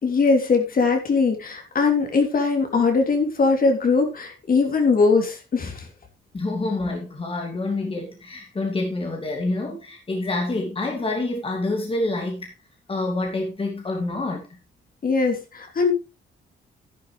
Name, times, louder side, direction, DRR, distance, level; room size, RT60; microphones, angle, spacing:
voice 1, 0.0-5.9 15.0-15.9, left 4 dB, 45° left, 3.2 m, -21 dB
voice 2, 6.3-12.5 12.9-14.6, left 2 dB, 30° left, 2.5 m, -27 dB
11.0 x 9.6 x 3.3 m
cardioid pair, 90°, 20 cm